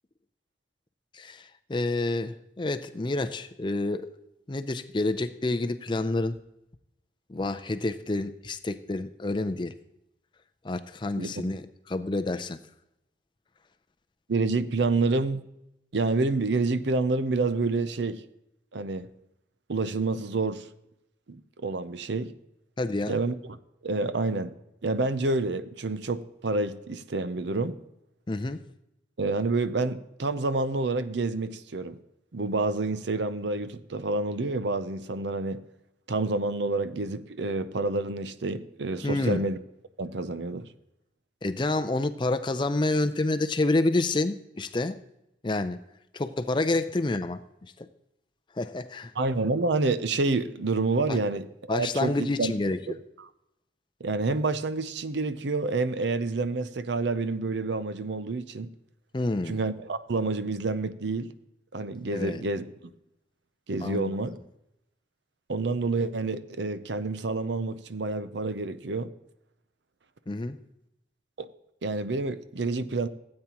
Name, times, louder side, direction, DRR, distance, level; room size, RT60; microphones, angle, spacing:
voice 1, 1.1-4.1 4.5-6.4 7.3-9.7 10.6-12.6 22.8-23.2 28.3-28.6 39.0-39.4 41.4-45.0 45.4-45.8 46.1-47.9 48.5-49.1 51.1-51.2 51.7-52.8 59.1-59.6 62.1-62.4 63.8-64.1 70.3-70.6, left 2 dB, 25° left, 0.5 m, -28 dB
voice 2, 14.3-15.4 15.9-18.2 18.7-19.1 19.7-20.7 21.3-22.3 23.1-23.3 23.8-24.5 24.8-27.8 29.2-31.9 32.3-35.6 36.1-39.6 40.0-40.7 49.2-51.5 51.7-52.7 54.0-58.7 59.5-61.3 61.7-62.6 63.7-64.3 65.5-69.1 71.4-71.5 71.8-73.1, right 3 dB, 75° right, 0.7 m, -28 dB
16.5 x 8.7 x 3.0 m
head